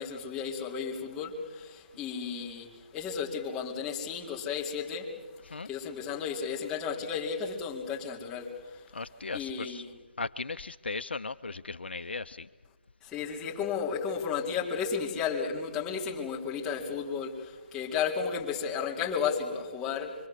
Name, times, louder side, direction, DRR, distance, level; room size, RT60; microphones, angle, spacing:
voice 1, 0.0-5.1 5.5-8.9 9.3-10.0 13.0-20.1, left 6 dB, 10° left, 4.1 m, -33 dB
voice 2, 8.9-9.8 10.2-12.5, left 3 dB, 65° left, 0.8 m, -37 dB
26.0 x 24.5 x 7.9 m
figure-of-eight pair, 155°, 6 cm